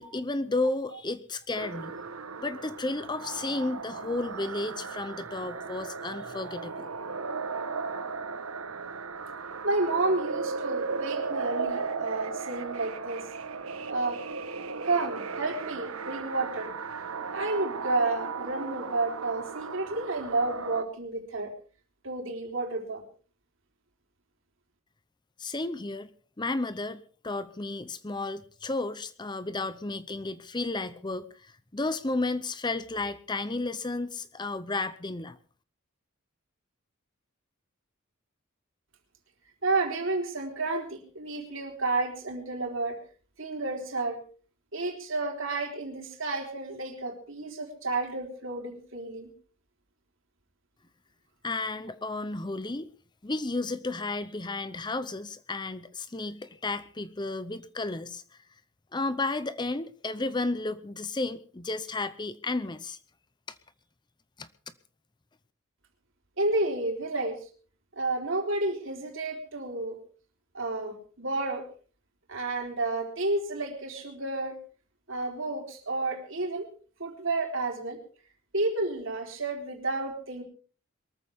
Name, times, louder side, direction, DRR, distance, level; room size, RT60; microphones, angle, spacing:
voice 1, 0.0-1.9 2.4-6.9 25.4-26.1 26.4-35.4 51.4-52.9 53.2-58.2 58.9-63.0 63.5-63.6 64.4-64.5, left 2 dB, 20° left, 14 dB, 0.7 m, -33 dB
sound 1, 1.5-20.8, right 4 dB, 85° right, 1.3 m, -36 dB
voice 2, 9.6-13.2 13.9-14.2 14.8-16.7 17.3-21.5 22.0-23.0 39.6-43.0 43.4-44.2 44.7-49.3 66.4-67.4 68.0-70.0 70.5-71.6 72.3-74.5 75.1-76.7 77.0-78.0 78.5-80.4, right 2 dB, 60° right, 3 dB, 3.9 m, -31 dB
22.5 x 14.0 x 3.6 m, 0.41 s
head